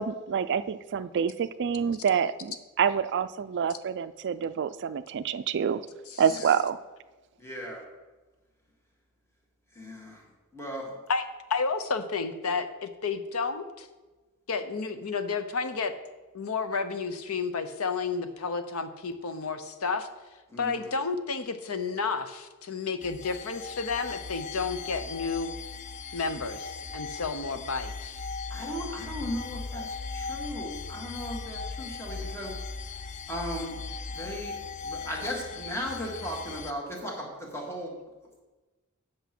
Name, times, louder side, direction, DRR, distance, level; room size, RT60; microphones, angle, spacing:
voice 1, 0.0-5.8 6.2-6.8, right 7 dB, 55° right, 13 dB, 0.4 m, -27 dB
voice 2, 7.4-7.8 9.8-10.2 10.5-11.0 20.5-21.0 28.5-32.5 33.3-33.7 34.1-34.5 34.8-37.9, equal, 10° left, -1 dB, 1.8 m, -37 dB
voice 3, 11.5-13.9 14.5-15.9 16.3-20.1 20.6-25.6 26.1-28.2, left 4 dB, 75° left, 9 dB, 0.8 m, -31 dB
sound 1, 23.0-36.7, left 4 dB, 35° left, 0.5 m, -38 dB
8.2 x 6.5 x 6.0 m, 1.2 s
head